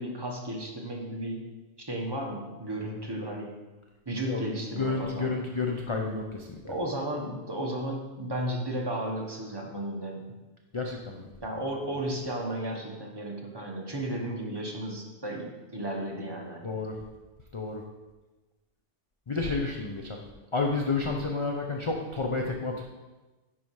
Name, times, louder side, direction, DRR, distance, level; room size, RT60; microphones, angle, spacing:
voice 1, 0.0-1.5 1.9-3.6 4.1-5.3 6.6-10.3 11.4-16.7, right 1 dB, 20° right, 0 dB, 1.2 m, -34 dB
voice 2, 4.7-6.6 10.7-11.3 16.6-17.0 17.5-17.8 19.3-20.2 20.5-22.8, left 3 dB, 35° left, 1 dB, 0.6 m, -30 dB
10.5 x 4.3 x 4.7 m, 1.2 s
omnidirectional pair, 1.2 m